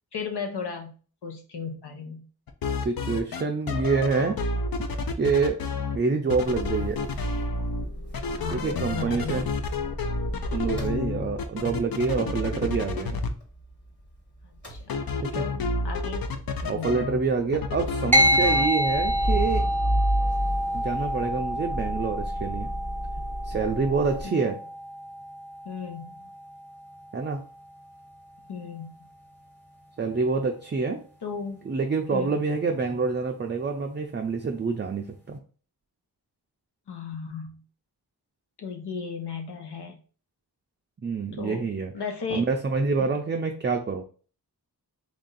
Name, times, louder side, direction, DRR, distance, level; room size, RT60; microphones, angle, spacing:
voice 1, 0.1-0.9 1.2-2.3 8.4-9.5 12.2-12.3 14.7-15.0 15.3-16.3 16.6-16.9 24.2-24.5 25.6-26.2 28.5-28.9 31.2-31.6 32.1-32.4 36.9-37.6 38.6-40.0 41.4-41.7 41.9-42.5 43.0-43.2, left 5 dB, 90° left, 3 dB, 0.9 m, -35 dB
sound 1, 2.5-3.4 3.7-6.0 6.3-7.9 8.1-13.3 14.9-17.2 17.5-18.7, left 3 dB, 65° left, 0.6 m, -30 dB
voice 2, 2.8-4.4 5.2-5.6 5.9-7.0 8.5-9.5 10.5-13.2 15.2-15.5 16.7-19.7 20.7-22.7 23.4-24.6 27.1-27.4 30.0-31.0 31.7-35.4 41.0-41.9 42.3-44.0, right 4 dB, 30° right, 2 dB, 0.4 m, -27 dB
Motor vehicle (road) / Engine starting / Idling, 6.4-14.1 14.4-24.2, equal, 30° left, 1.3 m, -33 dB
sound 2, 18.1-27.8, equal, 5° left, 0.7 m, -28 dB
3.3 x 2.6 x 3.8 m, 0.40 s
wide cardioid pair, 90°, 39 cm